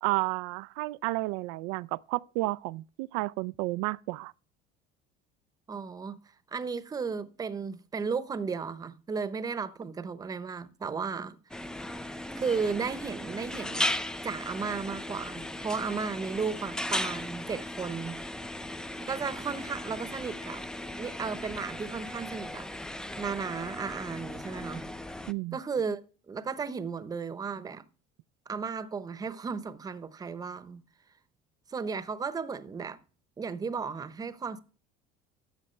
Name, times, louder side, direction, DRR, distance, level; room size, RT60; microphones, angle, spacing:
voice 1, 0.0-4.3 25.3-25.6, right 21 dB, 80° right, 0.4 m, -31 dB
voice 2, 5.7-6.2 6.5-11.4 12.4-13.9 14.2-18.2 19.0-20.6 21.0-22.7 23.2-24.8 25.5-26.0 26.3-27.8 28.5-30.8 31.7-33.0 33.4-34.6, right 5 dB, 20° right, 0.9 m, -34 dB
sound 1, 11.5-25.3, left 1 dB, 5° left, 0.5 m, -37 dB
13.0 x 7.5 x 3.2 m
cardioid pair, 135°, 19 cm